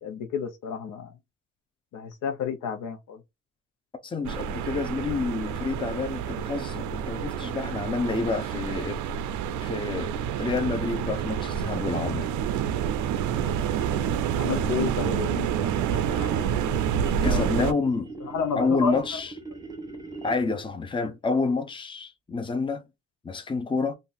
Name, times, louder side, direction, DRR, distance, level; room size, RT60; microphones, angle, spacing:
voice 1, 0.0-1.1 1.9-3.2 14.4-16.7 17.2-17.7 18.2-19.0, left 6 dB, 80° left, 0.8 m, -32 dB
voice 2, 4.0-9.0 9.6-12.3 17.2-18.1 18.6-19.3 20.2-22.8 23.2-23.9, left 4 dB, 15° left, 0.6 m, -28 dB
sound 1, 4.2-17.7, right 8 dB, 75° right, 0.5 m, -28 dB
sound 2, 13.3-20.6, right 3 dB, 15° right, 0.9 m, -42 dB
2.6 x 2.5 x 3.8 m
cardioid pair, 90°, 30 cm